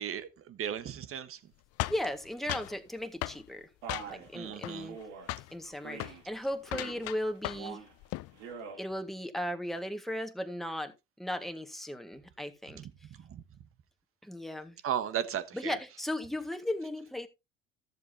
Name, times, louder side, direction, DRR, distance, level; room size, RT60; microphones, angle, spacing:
voice 1, 0.0-1.4 4.3-4.9 12.7-12.9 13.3-13.4 14.8-15.8, right 9 dB, 50° right, 1.4 m, -35 dB
sound 1, 1.8-2.8 3.2-3.4 3.9-4.3 4.6-5.0 5.3-5.5 5.9-6.2 6.6-7.7 8.0-8.3, left 19 dB, 55° left, 0.5 m, -37 dB
voice 2, 1.9-3.7 4.1-5.0 5.5-7.8 8.8-12.8 14.2-14.8 15.5-17.3, left 1 dB, ahead, 1.8 m, -36 dB
Male speech man speaking, 3.8-4.3 4.9-5.3 5.8-6.2 6.6-7.1 7.5-7.9 8.3-8.8, right 6 dB, 70° right, 3.2 m, -44 dB
14.0 x 7.4 x 2.8 m
hypercardioid pair, 70°, 30 cm